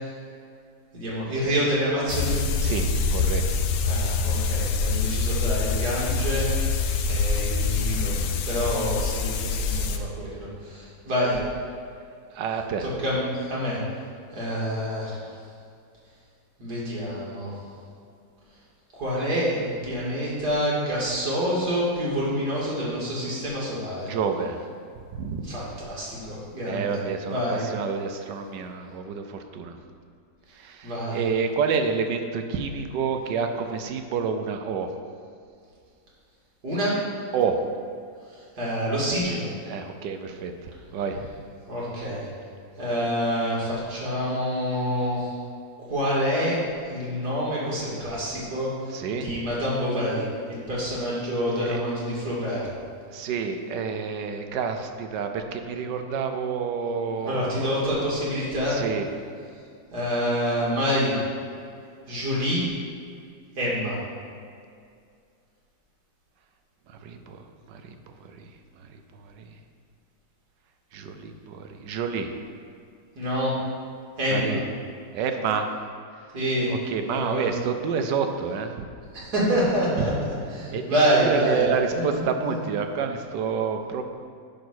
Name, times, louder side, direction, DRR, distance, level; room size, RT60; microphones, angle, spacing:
voice 1, 0.9-2.4 3.9-6.5 7.1-8.1 8.5-11.4 12.8-13.8 14.3-15.2 16.6-17.5 18.9-24.1 25.4-27.0 27.3-27.6 30.8-31.2 36.6-37.0 38.6-39.5 41.7-42.3 42.8-45.3 45.9-46.6 46.9-48.7 49.1-52.6 57.2-58.8 59.9-61.2 62.1-62.6 63.6-64.0 73.2-73.6 74.2-74.6 76.3-76.7 77.1-77.4 79.1-80.1 80.5-81.6 82.5-82.6, equal, 55° right, -6 dB, 2.8 m, -27 dB
sound 1, 2.1-10.0, left 4 dB, 85° left, 1.4 m, -25 dB
voice 2, 2.6-3.6 7.9-8.0 12.3-12.9 24.1-24.7 25.1-25.5 26.7-29.8 30.6-34.9 37.3-37.6 39.7-41.3 48.9-49.4 51.6-51.8 53.1-57.8 58.7-59.1 67.0-68.0 68.2-68.5 68.8-68.9 69.2-69.5 70.9-72.3 74.3-74.6 75.1-75.7 76.7-78.8 80.0-80.1 80.7-84.0, right 6 dB, 70° right, 6 dB, 1.3 m, -29 dB
10.5 x 3.9 x 6.3 m, 2.3 s
omnidirectional pair, 2.1 m